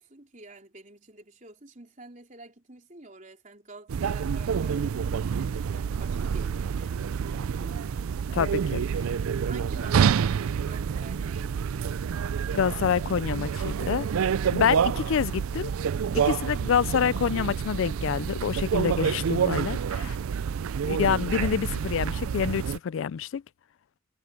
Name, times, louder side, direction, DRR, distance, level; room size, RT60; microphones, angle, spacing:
voice 1, 0.0-8.5 9.2-11.9 20.0-20.2, right 2 dB, 35° right, 3.9 m, -49 dB
sound 1, 3.9-22.8, right 7 dB, 90° right, 0.4 m, -28 dB
voice 2, 8.4-8.8 12.5-14.1 14.5-15.7 16.1-20.0 20.9-23.4, left 7 dB, 70° left, 0.3 m, -27 dB
head